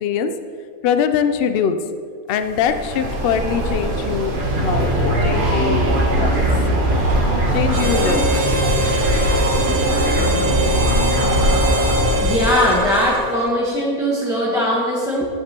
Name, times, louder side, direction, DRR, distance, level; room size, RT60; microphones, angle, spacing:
voice 1, 0.0-0.3 0.8-1.8 2.3-6.4 7.5-8.5 9.3-9.7, left 7 dB, 80° left, 9 dB, 0.5 m, -22 dB
sound 1, 2.4-13.2, right 1 dB, 70° right, 1.7 m, -24 dB
sound 2, 4.3-12.6, right 1 dB, 40° right, 1.1 m, -21 dB
Harmonica, 7.7-13.6, equal, 85° right, 1.3 m, -24 dB
voice 2, 12.2-15.3, equal, 5° right, -6 dB, 0.9 m, -20 dB
10.5 x 7.2 x 2.9 m, 2.2 s
omnidirectional pair, 1.6 m